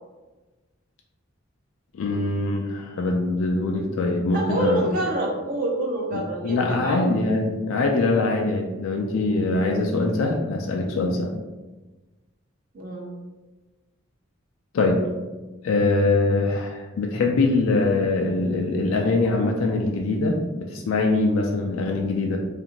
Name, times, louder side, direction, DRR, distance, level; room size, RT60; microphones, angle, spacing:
voice 1, 1.9-4.9 6.1-11.3 14.7-15.0 15.6-22.4, left 2 dB, 85° left, 1 dB, 0.4 m, -23 dB
voice 2, 4.3-7.0 12.7-13.1, right 1 dB, 45° right, -2 dB, 0.5 m, -27 dB
2.5 x 2.5 x 2.9 m, 1.2 s
head